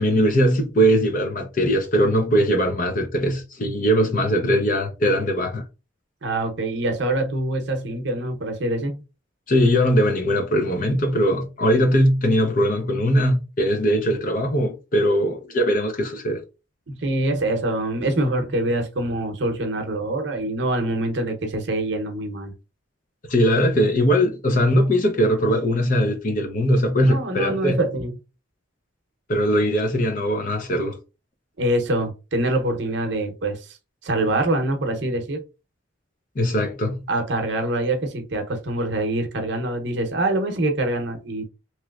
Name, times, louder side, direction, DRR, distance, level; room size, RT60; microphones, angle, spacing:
voice 1, 0.0-5.6 9.5-16.4 23.3-27.8 29.3-31.0 36.4-37.0, equal, 45° left, 0.6 m, -20 dB
voice 2, 6.2-9.0 16.9-22.5 27.0-28.1 31.6-33.8 34.0-35.4 37.1-41.4, right 1 dB, 60° right, 0.7 m, -25 dB
3.0 x 3.0 x 2.3 m
head